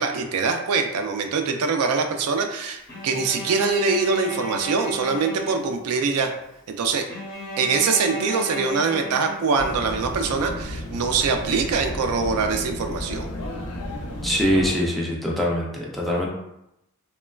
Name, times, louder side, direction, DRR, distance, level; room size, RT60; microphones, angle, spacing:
voice 1, 0.0-6.3 6.7-7.0 7.6-13.3, right 4 dB, 85° right, 5 dB, 0.3 m, -23 dB
Bowed string instrument, 2.9-6.1 7.1-10.0, equal, 45° left, 0.8 m, -35 dB
sound 1, 9.6-14.7, left 1 dB, 90° left, 0.5 m, -33 dB
voice 2, 14.2-16.3, equal, ahead, -3 dB, 0.3 m, -23 dB
2.9 x 2.2 x 2.3 m, 0.85 s
head